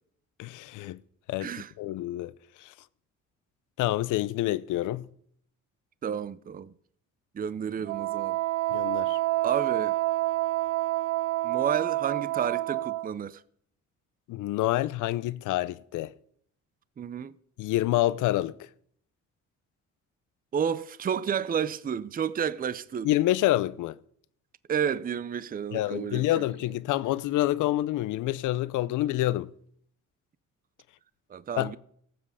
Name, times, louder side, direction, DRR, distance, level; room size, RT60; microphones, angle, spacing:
voice 1, 0.4-1.0 1.3-2.3 3.8-5.1 8.7-9.2 14.3-16.1 17.6-18.5 23.0-24.0 25.7-29.5 31.6-31.7, left 15 dB, 85° left, 0.6 m, -27 dB
voice 2, 1.4-1.7 6.0-6.7 7.3-8.4 9.4-10.0 11.4-13.4 17.0-17.3 20.5-23.1 24.7-26.5 31.3-31.8, right 8 dB, 30° right, 0.5 m, -31 dB
Wind instrument woodwind instrument, 7.9-13.1, right 18 dB, 85° right, 0.8 m, -28 dB
18.0 x 7.5 x 4.9 m
cardioid pair, 90°, 30 cm